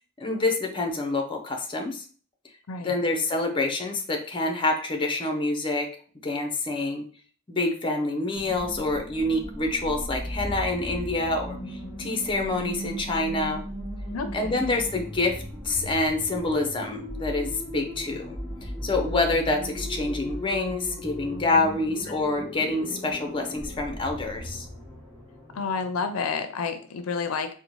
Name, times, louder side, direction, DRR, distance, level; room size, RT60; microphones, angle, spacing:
voice 1, 0.2-2.0 2.8-5.9 6.2-7.0 7.5-13.6 14.3-18.3 18.6-24.7, left 2 dB, 25° left, 4 dB, 0.5 m, -27 dB
sound 1, 8.3-26.6, equal, 10° left, 1.4 m, -37 dB
voice 2, 14.1-14.7 25.5-27.5, left 5 dB, 85° left, 8 dB, 0.5 m, -30 dB
4.0 x 2.1 x 3.0 m, 0.42 s
head